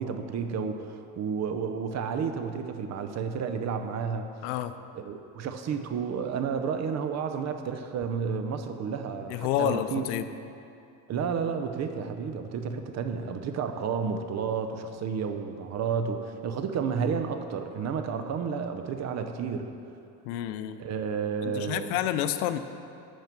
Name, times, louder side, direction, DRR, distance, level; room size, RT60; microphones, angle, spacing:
voice 1, 0.0-4.3 4.9-10.0 11.1-19.7 20.8-22.0, right 6 dB, 35° right, 7 dB, 0.7 m, -31 dB
voice 2, 4.4-4.7 9.3-10.3 18.2-18.3 20.2-20.8 21.4-22.6, left 12 dB, 85° left, 11 dB, 0.7 m, -29 dB
9.1 x 6.6 x 5.9 m, 2.6 s
cardioid pair, 135°, 45 cm